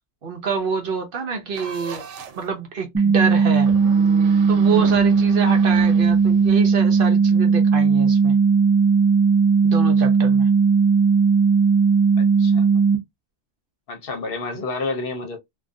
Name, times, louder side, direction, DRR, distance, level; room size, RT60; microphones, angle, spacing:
voice 1, 0.2-2.0 2.4-3.7 4.5-8.4 9.6-10.5, right 5 dB, 60° right, 0.7 m, -26 dB
sound 1, 1.5-2.5 3.6-6.7, right 5 dB, 85° right, 0.9 m, -36 dB
sound 2, 2.9-13.0, right 5 dB, 20° right, 0.4 m, -17 dB
voice 2, 12.2-12.8 13.9-15.4, left 3 dB, 60° left, 0.8 m, -30 dB
2.3 x 2.3 x 2.5 m
omnidirectional pair, 1.2 m